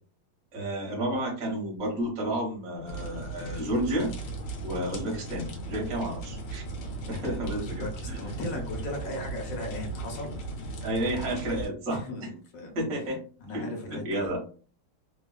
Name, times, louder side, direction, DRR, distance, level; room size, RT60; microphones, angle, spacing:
voice 1, 0.5-4.1 4.6-6.6 7.1-8.2 10.8-12.3 12.7-13.2 13.5-14.4, right 1 dB, 50° right, -1 dB, 1.3 m, -31 dB
sound 1, 2.9-11.7, right 2 dB, 70° left, 1.4 m, -37 dB
voice 2, 7.5-10.4 11.9-12.8 13.4-14.3, left 2 dB, 55° left, 1 dB, 1.0 m, -37 dB
3.4 x 2.2 x 2.3 m, 0.39 s
omnidirectional pair, 2.3 m